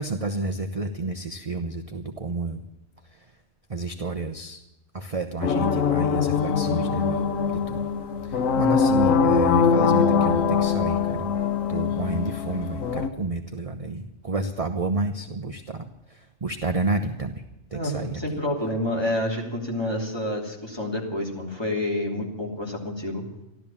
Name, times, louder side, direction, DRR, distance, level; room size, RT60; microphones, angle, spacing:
voice 1, 0.0-2.6 3.0-3.3 3.7-4.6 4.9-7.3 7.7-7.9 8.2-11.3 11.7-17.4 17.7-18.2, right 3 dB, 30° right, 6 dB, 0.9 m, -30 dB
sound 1, 5.4-13.1, left 6 dB, 80° left, 1.3 m, -22 dB
voice 2, 17.7-23.2, left 1 dB, 20° left, -2 dB, 3.1 m, -28 dB
14.5 x 12.5 x 7.2 m, 0.90 s
omnidirectional pair, 1.4 m